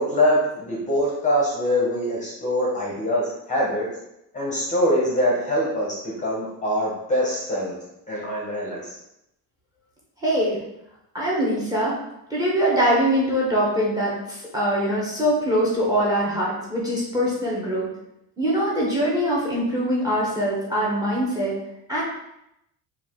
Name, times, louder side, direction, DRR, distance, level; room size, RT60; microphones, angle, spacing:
voice 1, 0.0-3.9 4.3-7.7 8.1-9.0, equal, 20° left, -4 dB, 0.7 m, -23 dB
voice 2, 10.2-10.6 11.1-12.0 12.3-17.9 18.4-21.5 21.9-22.0, equal, 10° right, -5 dB, 0.8 m, -23 dB
4.5 x 2.4 x 3.6 m, 0.82 s
cardioid pair, 180°, 37 cm